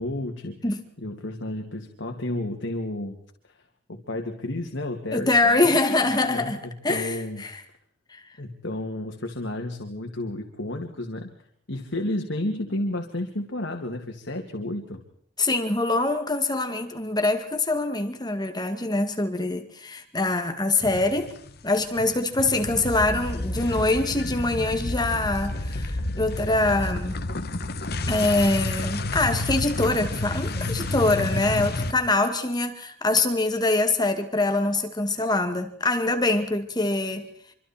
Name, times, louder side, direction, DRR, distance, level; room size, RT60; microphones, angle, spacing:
voice 1, 0.0-0.6 1.0-3.2 3.4-3.5 3.9-5.8 6.3-7.4 8.4-11.3 11.7-15.0, left 1 dB, 85° left, 2.3 m, -31 dB
voice 2, 5.1-6.6 6.8-7.6 8.1-8.2 15.4-21.3 21.6-27.2 28.1-37.3, left 2 dB, 20° left, 2.1 m, -24 dB
sound 1, 20.8-21.6 21.8-31.9, left 2 dB, 60° left, 1.3 m, -30 dB
26.0 x 25.5 x 4.3 m
head